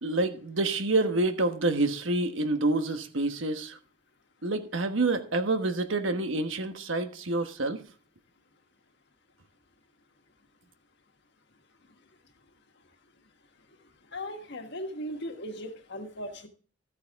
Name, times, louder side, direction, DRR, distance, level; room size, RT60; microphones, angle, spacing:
voice 1, 0.0-3.8 4.4-7.8, right 2 dB, 70° right, 1.2 m, -27 dB
voice 2, 14.1-16.5, equal, 60° left, 1.5 m, -37 dB
13.5 x 8.5 x 3.6 m
head